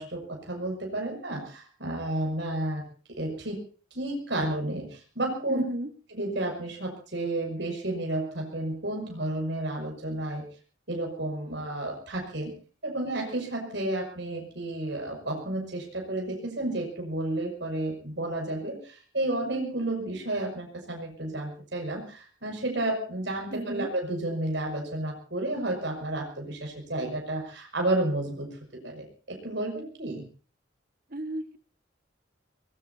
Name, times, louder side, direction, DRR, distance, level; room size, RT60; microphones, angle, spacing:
voice 1, 0.0-2.8 3.2-3.6 3.9-5.6 6.1-10.4 10.9-12.5 12.8-28.6 28.8-30.3, right 1 dB, 65° right, 0 dB, 6.5 m, -31 dB
voice 2, 5.5-5.9 23.5-23.9 31.1-31.6, right 1 dB, 50° right, 7 dB, 1.7 m, -34 dB
24.0 x 21.0 x 2.9 m, 0.40 s
head